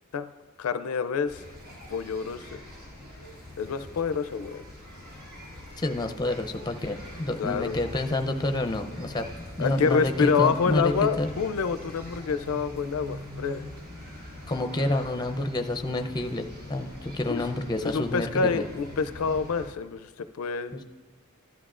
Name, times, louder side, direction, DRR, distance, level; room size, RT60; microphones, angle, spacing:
voice 1, 0.6-1.4 1.9-2.6 3.6-4.6 7.4-7.8 9.6-13.6 17.3-17.4 17.8-20.8, left 5 dB, 75° left, 11 dB, 0.4 m, -27 dB
sound 1, 1.3-19.7, left 1 dB, 80° right, 2.3 m, -43 dB
voice 2, 5.8-9.3 9.6-11.3 14.5-18.6 20.7-20.8, left 2 dB, 20° left, 7 dB, 0.5 m, -29 dB
15.5 x 11.5 x 2.5 m, 1.3 s
head